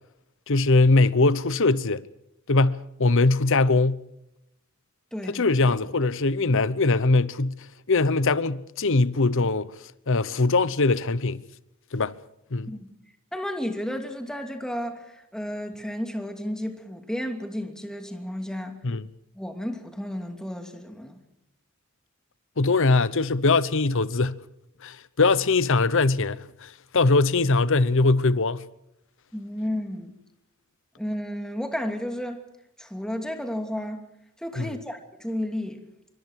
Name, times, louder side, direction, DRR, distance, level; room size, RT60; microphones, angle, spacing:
voice 1, 0.5-2.0 2.5-4.0 5.3-9.7 10.1-11.4 11.9-12.1 12.5-12.7 18.8-19.0 22.6-24.4 24.8-28.6 34.6-34.7, left 3 dB, 65° left, 0.9 m, -22 dB
voice 2, 5.1-5.4 12.7-12.9 13.3-18.7 19.3-21.2 29.3-30.1 31.0-32.4 32.8-34.0 34.4-35.9, equal, 5° left, 2.7 m, -32 dB
26.5 x 24.0 x 4.8 m
head